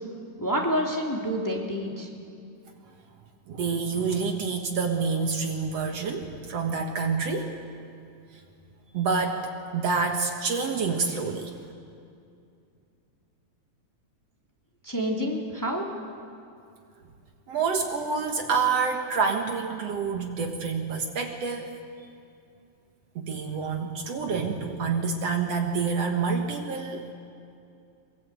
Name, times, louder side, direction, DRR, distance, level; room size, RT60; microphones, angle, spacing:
voice 1, 0.4-2.1 14.8-15.9, equal, 5° left, -1 dB, 2.4 m, -28 dB
voice 2, 3.5-7.5 8.9-9.4 9.7-11.5 17.5-21.7 23.2-27.1, right 5 dB, 60° right, 3 dB, 2.4 m, -27 dB
23.0 x 22.0 x 8.3 m, 2.5 s
omnidirectional pair, 3.4 m